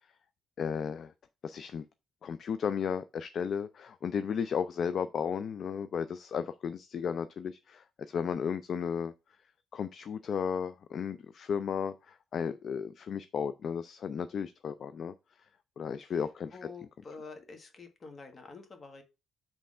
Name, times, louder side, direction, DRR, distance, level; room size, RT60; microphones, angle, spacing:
voice 1, 0.6-1.1 1.4-1.8 2.2-9.1 9.7-15.1 15.8-16.6, left 7 dB, 60° left, 0.4 m, -34 dB
voice 2, 16.5-19.0, left 4 dB, 40° left, 1.5 m, -48 dB
5.4 x 3.4 x 5.4 m
cardioid pair, 90°, 0 cm